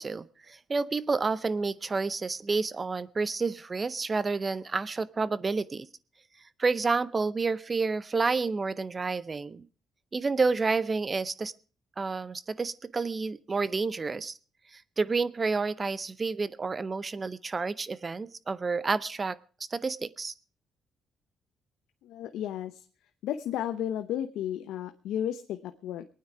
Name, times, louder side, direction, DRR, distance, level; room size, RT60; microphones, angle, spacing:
voice 1, 0.0-5.9 6.6-9.7 10.1-11.5 12.0-14.4 14.7-19.4 19.7-20.3, right 4 dB, 30° right, 19 dB, 0.7 m, -29 dB
voice 2, 22.0-22.9 23.2-26.0, left 10 dB, 85° left, 8 dB, 0.8 m, -33 dB
23.0 x 9.5 x 4.7 m, 0.39 s
cardioid pair, 90°, 0 cm